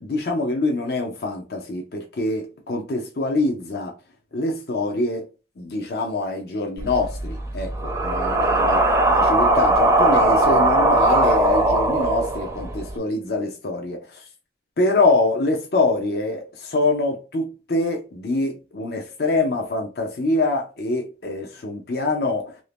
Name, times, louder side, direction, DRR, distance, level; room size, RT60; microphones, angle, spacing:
voice 1, 0.0-3.9 4.3-5.2 5.6-8.8 9.1-14.3 14.8-22.6, left 2 dB, 60° left, 0.6 m, -24 dB
Scary Breath, 6.8-12.9, right 1 dB, 15° right, 0.5 m, -19 dB
2.8 x 2.6 x 3.4 m
head